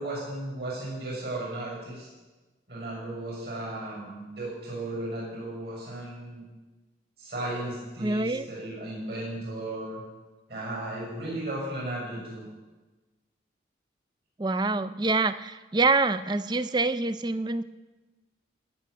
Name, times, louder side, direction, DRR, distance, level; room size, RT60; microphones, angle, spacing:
voice 1, 0.0-2.1 2.7-6.4 7.2-10.0 10.5-12.4, right 1 dB, 60° right, -3 dB, 6.5 m, -35 dB
voice 2, 8.0-8.5 14.4-17.6, right 3 dB, 25° right, 13 dB, 0.5 m, -26 dB
19.5 x 6.6 x 8.3 m, 1.2 s
head